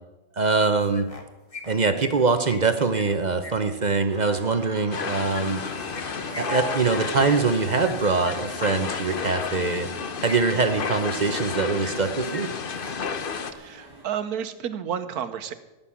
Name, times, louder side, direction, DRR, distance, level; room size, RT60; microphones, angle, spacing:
voice 1, 0.4-1.1 1.7-5.6 6.4-9.9 10.2-12.5, right 4 dB, 40° right, 9 dB, 0.7 m, -23 dB
sound 1, 0.6-1.2 1.5-3.5 4.9-8.3 9.7-9.9 10.2-11.0 11.3-12.0 12.3-12.4 12.7-12.9, left 3 dB, 25° left, 1.5 m, -41 dB
sound 2, 4.1-14.0, equal, 15° right, 3.5 m, -42 dB
sound 3, 4.9-13.5, left 6 dB, 45° left, 0.9 m, -32 dB
voice 2, 13.5-15.5, right 8 dB, 80° right, 11 dB, 1.4 m, -31 dB
17.0 x 7.0 x 8.4 m, 1.1 s
omnidirectional pair, 1.6 m